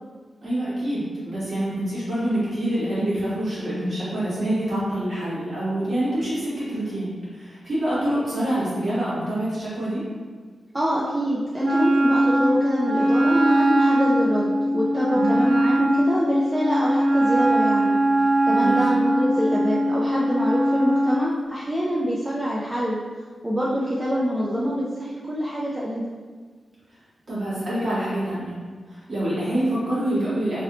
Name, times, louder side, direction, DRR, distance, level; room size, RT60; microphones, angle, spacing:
voice 1, 0.4-10.0 15.1-15.4 18.5-18.8 26.9-27.0 27.3-28.6 28.9-30.6, right 1 dB, 45° right, -10 dB, 1.4 m, -26 dB
voice 2, 10.7-18.0 18.5-23.0 23.4-26.1, equal, 10° right, -6 dB, 0.3 m, -25 dB
Wind instrument woodwind instrument, 11.6-21.2, right 1 dB, 75° right, 0.6 m, -21 dB
3.0 x 2.5 x 2.9 m, 1.5 s
wide cardioid pair, 165°, 0 cm